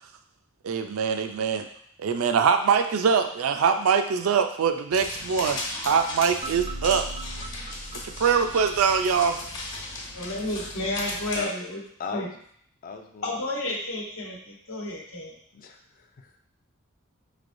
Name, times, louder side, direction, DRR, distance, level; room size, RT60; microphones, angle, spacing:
voice 1, 0.6-1.7 2.0-7.1 8.2-9.4, right 6 dB, 80° right, 6 dB, 0.4 m, -23 dB
sound 1, 4.9-11.4, left 2 dB, 60° left, 1.1 m, -36 dB
sound 2, 6.4-9.5, right 2 dB, 25° right, 0.4 m, -39 dB
voice 2, 10.1-11.8 12.1-12.3 13.2-15.3, left 1 dB, 80° left, -2 dB, 1.0 m, -31 dB
voice 3, 12.0-12.4 12.8-13.4 15.5-16.3, left 5 dB, 40° left, 4 dB, 0.3 m, -37 dB
4.4 x 3.2 x 2.5 m, 0.64 s
head